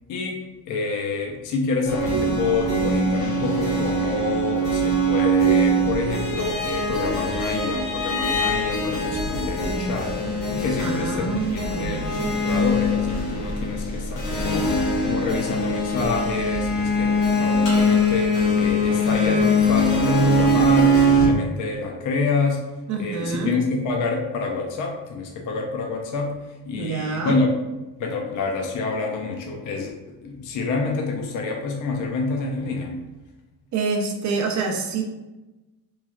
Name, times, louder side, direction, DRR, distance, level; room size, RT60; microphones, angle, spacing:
voice 1, 0.7-22.6 23.0-26.3 26.7-27.5 28.0-29.9 30.2-32.9, left 4 dB, 50° left, 0 dB, 0.4 m, -27 dB
sound 1, 1.8-21.3, equal, 90° left, 1.2 m, -22 dB
voice 2, 10.8-12.4 22.9-23.6 26.7-27.4 33.7-35.0, right 4 dB, 45° right, 2 dB, 0.5 m, -27 dB
3.1 x 2.2 x 2.3 m, 1.1 s
cardioid pair, 130°, 41 cm